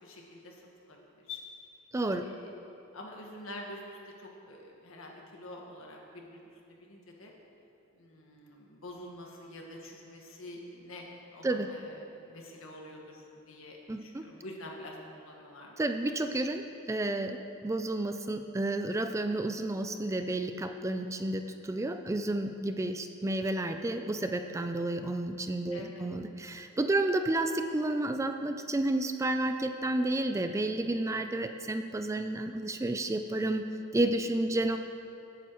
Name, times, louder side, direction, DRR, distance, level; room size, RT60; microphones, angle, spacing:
voice 1, 0.0-0.6 0.9-1.4 2.2-2.5 2.9-7.3 7.9-12.0 12.2-15.8 16.5-16.6 25.7-26.1, left 1 dB, 75° left, -1 dB, 1.7 m, -47 dB
voice 2, 1.9-2.2 11.4-11.7 13.9-14.2 15.8-33.6 33.9-34.8, right 2 dB, 15° right, 7 dB, 0.3 m, -31 dB
17.0 x 9.0 x 3.1 m, 2.8 s
head